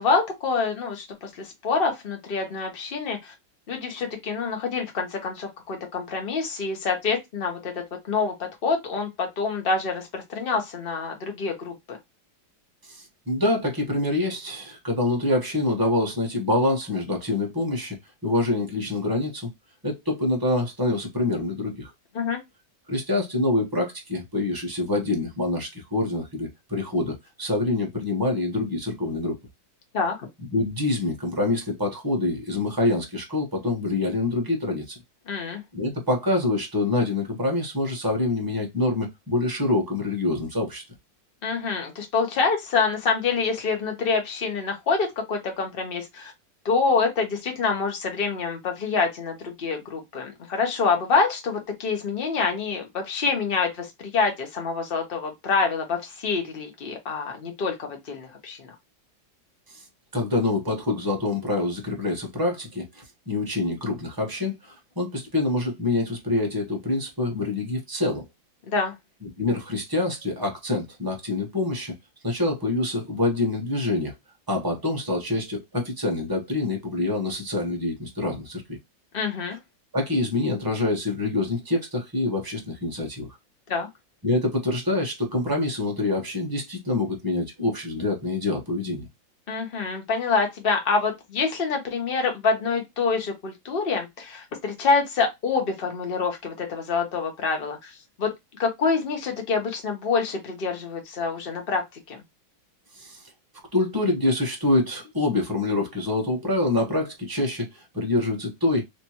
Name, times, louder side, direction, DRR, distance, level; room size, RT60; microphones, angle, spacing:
voice 1, 0.0-3.3 3.7-8.3 8.6-12.0 22.1-22.4 29.9-30.2 35.3-35.6 41.4-46.3 46.6-58.7 68.7-68.9 79.1-79.6 83.7-83.9 89.5-98.3 98.6-101.8 102.1-102.2, left 4 dB, 35° left, 1.0 m, -26 dB
voice 2, 12.8-19.5 19.8-21.9 22.9-29.4 30.5-35.0 35.7-40.8 59.7-59.9 60.1-68.2 69.2-71.9 72.2-74.1 74.5-78.8 79.9-83.3 84.2-89.1 102.9-103.3 103.7-108.8, left 2 dB, 15° right, 0.8 m, -26 dB
3.3 x 3.0 x 2.8 m
omnidirectional pair, 2.1 m